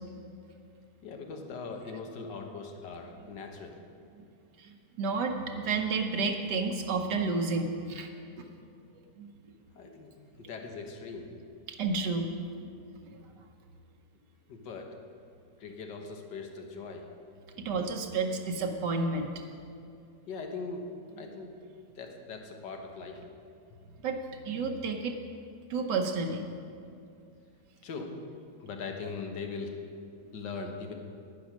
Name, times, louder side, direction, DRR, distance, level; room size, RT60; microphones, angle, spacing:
voice 1, 1.0-3.8 9.8-10.1 10.4-11.4 14.5-14.9 15.6-17.1 20.3-20.9 21.2-21.6 22.0-23.2 27.8-28.2 28.6-29.8 30.3-30.9, left 4 dB, 80° left, 3 dB, 1.8 m, -40 dB
voice 2, 4.6-8.1 8.4-8.5 9.2-9.3 9.8-10.0 11.7-12.3 12.6-12.7 17.6-19.3 24.0-25.2 25.7-26.4, right 4 dB, 75° right, 3 dB, 1.4 m, -31 dB
10.5 x 9.9 x 6.1 m, 2.4 s
omnidirectional pair, 1.9 m